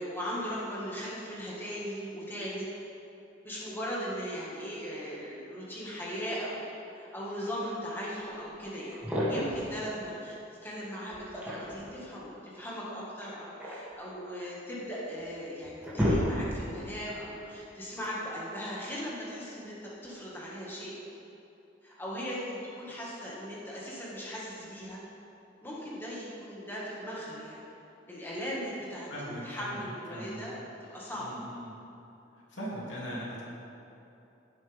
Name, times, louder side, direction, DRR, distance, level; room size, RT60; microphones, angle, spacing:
voice 1, 0.0-2.7 3.4-6.7 6.9-9.0 9.3-20.9 21.8-25.0 25.6-27.6 28.1-30.6 30.9-31.3, equal, 10° left, -6 dB, 1.9 m, -38 dB
sound 1, 8.5-8.6 8.9-9.7 11.1-11.9 13.2-14.6 15.2-15.3 15.6-16.8, equal, 10° right, 2.5 m, -31 dB
voice 2, 29.1-30.4 31.1-31.7 32.5-33.4, equal, 80° left, -6 dB, 2.8 m, -40 dB
16.5 x 7.9 x 3.6 m, 2.9 s
head